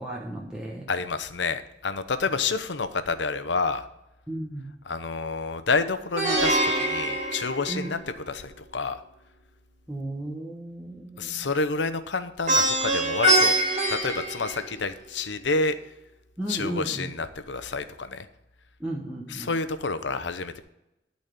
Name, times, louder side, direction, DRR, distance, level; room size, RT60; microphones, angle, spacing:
voice 1, 0.0-0.9 4.3-4.7 7.7-7.9 9.9-11.5 16.4-17.1 18.8-19.5, right 1 dB, 5° right, -3 dB, 1.1 m, -34 dB
voice 2, 0.9-3.9 4.9-8.0 8.3-9.0 11.2-13.6 13.9-15.8 16.5-18.3 19.3-20.6, left 4 dB, 75° left, 11 dB, 0.8 m, -29 dB
Plucked string instrument, 6.2-8.3 12.5-15.1, right 1 dB, 40° right, 2.3 m, -24 dB
12.5 x 4.2 x 8.1 m, 0.88 s
head